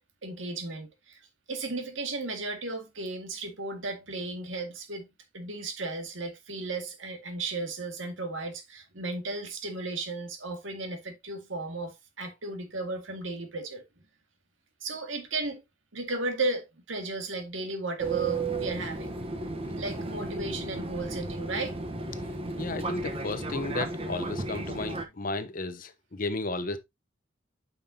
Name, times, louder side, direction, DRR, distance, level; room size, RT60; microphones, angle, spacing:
voice 1, 0.2-1.2 1.5-5.1 5.3-13.8 14.8-15.6 15.9-19.2 19.8-21.8, right 3 dB, 85° right, 1.9 m, -35 dB
Fixed-wing aircraft airplane, 18.0-25.0, right 3 dB, 30° right, 1.0 m, -34 dB
voice 2, 22.6-26.8, left 2 dB, 45° left, 0.8 m, -33 dB
8.6 x 5.7 x 2.8 m
head